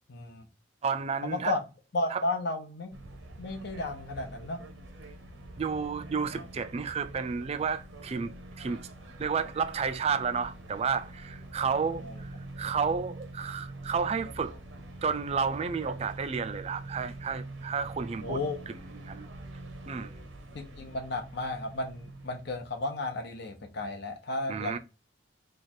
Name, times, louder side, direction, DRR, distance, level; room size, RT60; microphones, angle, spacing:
voice 1, 0.1-0.5 1.2-1.6 1.9-2.9 3.4-4.6 12.0-12.1 18.2-18.6 20.5-24.8, left 2 dB, 60° left, 0.8 m, -33 dB
voice 2, 0.8-1.6 2.1-2.2 5.6-8.9 9.2-14.6 15.0-18.4 18.7-19.3 19.9-20.1 24.5-24.8, right 5 dB, 30° right, 0.3 m, -31 dB
sound 1, 2.9-22.8, right 2 dB, 80° right, 0.7 m, -45 dB
3.2 x 2.4 x 4.1 m
head